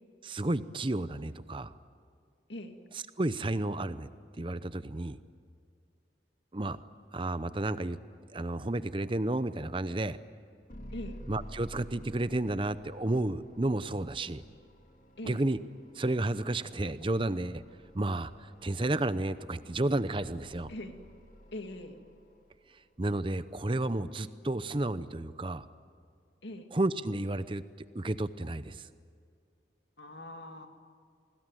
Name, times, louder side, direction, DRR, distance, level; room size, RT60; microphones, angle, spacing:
voice 1, 0.2-1.7 3.2-4.1 4.4-5.2 6.5-6.8 7.1-8.0 8.3-10.2 11.3-14.4 15.3-15.6 16.0-17.6 17.9-20.7 23.0-25.7 26.7-27.6 27.9-28.9, right 2 dB, 30° right, 14 dB, 0.7 m, -31 dB
sound 1, 10.7-22.9, equal, 50° left, 2.1 m, -52 dB
voice 2, 15.2-15.5 20.7-20.9 21.5-22.0 26.4-26.7 30.0-30.7, left 1 dB, 80° left, 5 dB, 2.3 m, -42 dB
28.0 x 20.0 x 9.2 m, 2.3 s
head